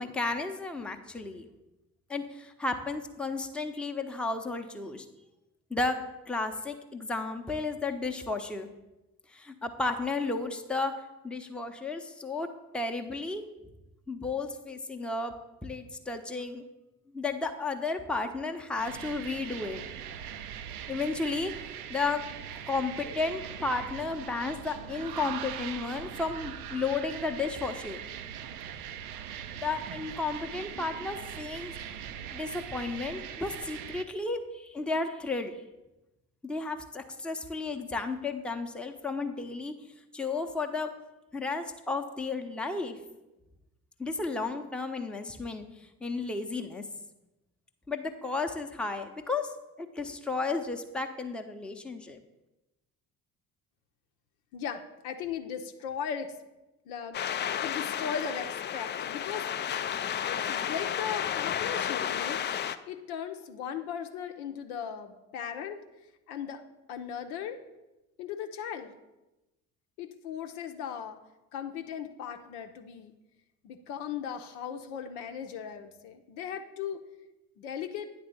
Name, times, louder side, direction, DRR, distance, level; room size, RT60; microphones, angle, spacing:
voice 1, 0.0-1.5 2.1-5.1 5.7-6.0 6.3-8.7 9.3-10.9 11.2-12.5 12.7-13.4 14.1-15.3 15.6-16.6 17.1-19.8 20.9-21.5 21.9-22.2 22.7-28.0 29.6-31.7 32.3-35.5 36.4-39.7 40.1-40.9 41.3-43.0 44.0-45.6 46.0-46.8 47.9-49.5 49.8-52.2, left 3 dB, ahead, 5 dB, 0.7 m, -33 dB
sound 1, 18.8-34.0, right 9 dB, 70° right, 0.6 m, -41 dB
voice 2, 54.5-56.3 56.9-59.4 60.3-62.4 62.9-65.8 66.3-66.6 66.9-67.6 68.2-69.0 70.0-71.2 71.5-73.1 73.6-77.0 77.6-78.1, left 8 dB, 70° left, 6 dB, 0.7 m, -37 dB
sound 2, 57.1-62.8, left 9 dB, 25° left, 0.3 m, -32 dB
9.3 x 3.4 x 6.8 m, 1.0 s
figure-of-eight pair, 45°, 45 cm